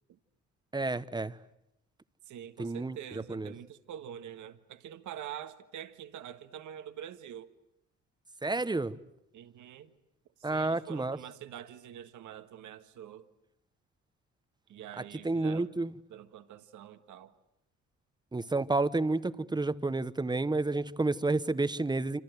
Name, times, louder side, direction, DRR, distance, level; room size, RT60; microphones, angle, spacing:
voice 1, 0.7-1.4 2.6-3.0 3.3-3.5 8.4-9.0 10.4-11.2 15.2-15.9 18.3-22.2, right 2 dB, 15° right, 1.1 m, -30 dB
voice 2, 2.3-7.5 9.3-9.9 10.4-13.3 14.7-15.7 16.1-17.3, right 10 dB, 80° right, 1.7 m, -45 dB
27.0 x 26.5 x 8.1 m
cardioid pair, 90°, 30 cm